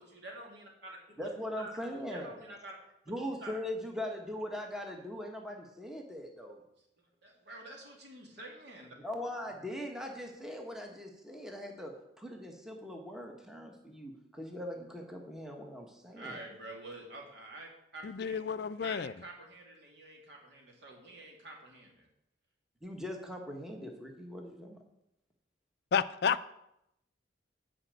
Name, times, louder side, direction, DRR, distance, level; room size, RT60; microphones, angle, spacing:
voice 1, 0.0-1.3 1.6-2.8 3.4-3.6 6.8-9.0 16.1-18.4 18.8-22.1, right 2 dB, 60° right, 2.7 m, -48 dB
voice 2, 1.2-2.4 3.1-6.6 9.0-16.4 22.8-24.8, left 1 dB, 5° right, 1.2 m, -41 dB
voice 3, 18.0-19.1 25.9-26.5, left 7 dB, 55° left, 0.4 m, -31 dB
9.9 x 5.1 x 8.0 m
head